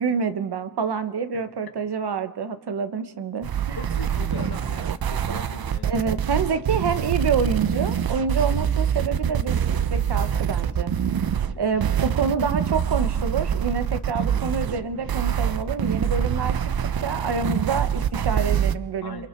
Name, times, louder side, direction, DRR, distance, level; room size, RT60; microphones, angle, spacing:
voice 1, 0.0-3.8 5.8-10.9 11.6-16.7 17.0-19.3, right 5 dB, 90° right, 10 dB, 1.3 m, -27 dB
sound 1, 3.4-18.7, right 8 dB, 65° right, 0.8 m, -25 dB
voice 2, 3.8-5.9 6.9-7.0 11.5-11.9 14.1-14.5 19.0-19.3, left 5 dB, 70° left, 5 dB, 2.1 m, -40 dB
28.5 x 24.0 x 4.6 m, 1.0 s
wide cardioid pair, 155°, 39 cm